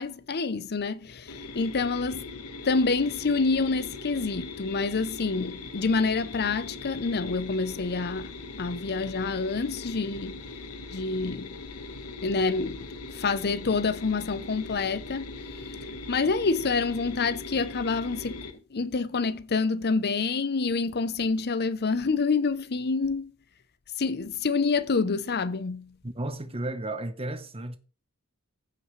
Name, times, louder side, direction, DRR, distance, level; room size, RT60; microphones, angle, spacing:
voice 1, 0.0-2.3 2.6-10.4 10.9-11.6 12.2-15.7 16.1-23.3 24.0-26.0, left 4 dB, 45° left, 0.7 m, -27 dB
sound 1, 1.3-18.5, left 3 dB, 75° left, 1.2 m, -40 dB
voice 2, 26.0-27.8, right 1 dB, 25° right, 1.0 m, -33 dB
15.0 x 5.6 x 3.2 m
head